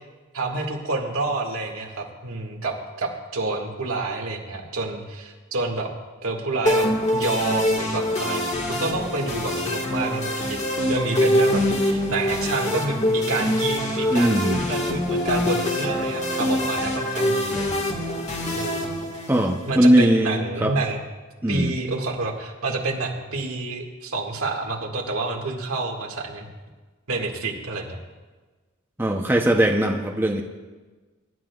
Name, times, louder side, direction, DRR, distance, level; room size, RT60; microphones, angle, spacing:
voice 1, 0.3-5.9 6.2-10.6 10.9-17.7 18.5-18.9 19.7-21.0 21.5-26.5 27.1-28.0, right 3 dB, 85° right, 0 dB, 1.9 m, -28 dB
sound 1, 6.7-19.7, left 1 dB, 35° left, 1.5 m, -24 dB
voice 2, 14.1-14.6 19.3-20.7 21.4-21.7 29.0-30.4, right 1 dB, 10° right, 2 dB, 0.7 m, -20 dB
24.0 x 11.0 x 2.4 m, 1.3 s
head